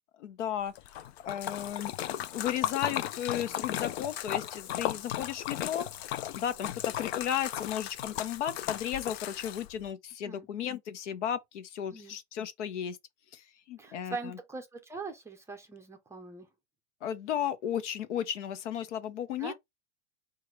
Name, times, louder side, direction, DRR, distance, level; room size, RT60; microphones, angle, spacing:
voice 1, 0.2-1.9 2.2-5.9 6.3-13.0 13.3-14.4 17.0-19.5, left 10 dB, 75° left, 0.9 m, -34 dB
Splash splatter, 0.8-9.9, left 12 dB, 60° left, 0.6 m, -36 dB
voice 2, 13.8-16.5 19.4-19.5, right 3 dB, 10° right, 0.5 m, -41 dB
4.7 x 2.5 x 4.5 m
supercardioid pair, 145°, 36 cm